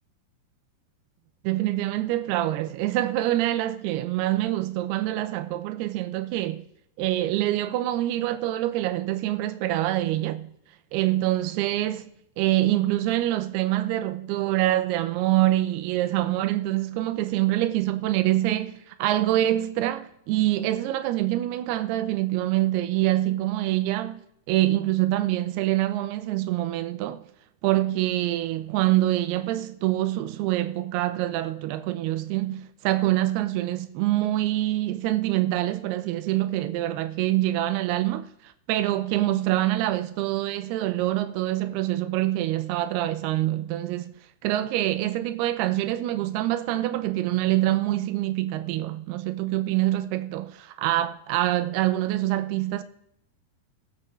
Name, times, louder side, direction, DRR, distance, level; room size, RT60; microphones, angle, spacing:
voice 1, 1.4-6.6 7.0-10.5 10.9-24.2 24.5-27.2 27.6-38.3 38.7-44.1 44.4-52.8, right 15 dB, 90° right, 2.6 m, -25 dB
20.0 x 7.6 x 3.2 m
omnidirectional pair, 4.5 m